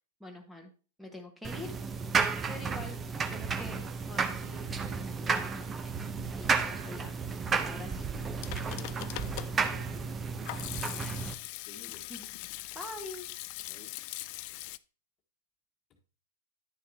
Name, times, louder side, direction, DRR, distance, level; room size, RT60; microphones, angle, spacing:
voice 1, 0.2-0.7 1.0-1.7 2.5-3.0 3.3-6.1 6.3-7.2 7.6-8.2 11.0-11.2 11.9-12.3 12.7-13.3, left 1 dB, ahead, 1.2 m, -45 dB
sound 1, 1.4-11.3, right 5 dB, 20° right, 0.7 m, -33 dB
Hands / Sink (filling or washing), 8.1-14.8, left 19 dB, 50° left, 0.3 m, -41 dB
voice 2, 8.5-11.1 11.6-12.1 13.7-14.0, left 3 dB, 30° left, 1.4 m, -53 dB
10.5 x 6.6 x 2.8 m
figure-of-eight pair, 100°, 0 cm